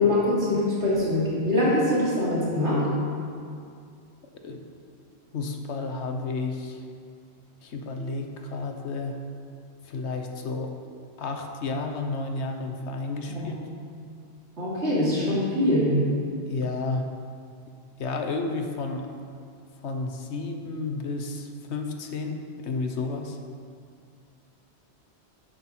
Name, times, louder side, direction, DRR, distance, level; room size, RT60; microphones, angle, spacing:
voice 1, 0.0-2.8 13.3-13.5 14.6-15.9, left 1 dB, 80° right, -8 dB, 3.1 m, -23 dB
voice 2, 5.3-6.8 7.6-9.2 9.8-10.7 11.2-13.6 16.5-17.1 18.0-19.1 19.8-23.4, left 3 dB, 80° left, 5 dB, 1.2 m, -31 dB
10.0 x 7.9 x 4.4 m, 2.3 s
omnidirectional pair, 1.1 m